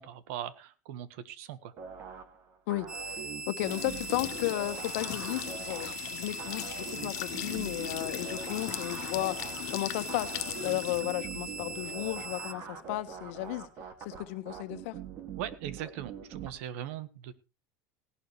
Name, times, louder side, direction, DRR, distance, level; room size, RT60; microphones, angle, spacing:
voice 1, 0.0-1.7 15.4-17.3, right 11 dB, 80° right, 15 dB, 1.5 m, -40 dB
sound 1, 1.8-16.5, right 7 dB, 40° right, 2.2 m, -44 dB
voice 2, 2.7-13.7 14.0-15.0, left 17 dB, 80° left, 10 dB, 1.4 m, -34 dB
sound 2, 2.9-12.5, right 3 dB, 10° right, 0.7 m, -41 dB
sound 3, 3.6-13.3, left 17 dB, 55° left, 0.8 m, -40 dB
17.5 x 11.5 x 3.2 m, 0.28 s
cardioid pair, 155°, 7 cm